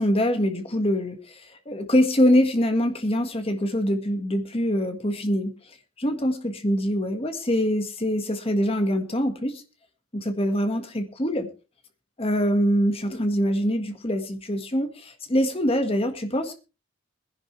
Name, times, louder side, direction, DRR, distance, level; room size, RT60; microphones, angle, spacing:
voice 1, 0.0-5.5 6.0-6.3 6.6-9.6 10.1-11.5 12.2-16.6, equal, 25° left, 7 dB, 1.7 m, -24 dB
21.0 x 11.0 x 3.3 m, 0.32 s
head